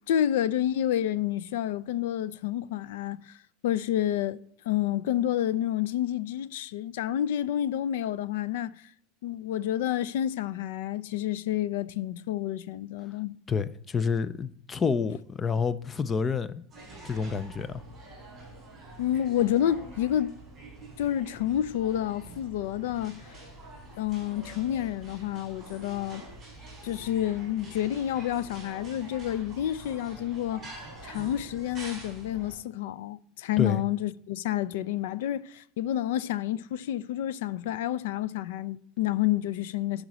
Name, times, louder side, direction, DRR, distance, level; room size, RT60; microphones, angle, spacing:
voice 1, 0.1-3.2 3.6-4.4 4.7-8.8 9.2-13.4 19.0-20.4 21.0-23.3 24.0-26.2 26.8-30.7 31.0-40.0, left 11 dB, 80° left, 0.4 m, -29 dB
voice 2, 13.5-16.5 17.0-17.8 33.6-33.8, left 5 dB, 15° left, 0.3 m, -28 dB
sound 1, 16.7-32.6, right 2 dB, 10° right, 3.8 m, -46 dB
11.0 x 5.0 x 4.1 m
supercardioid pair, 180°, 0 cm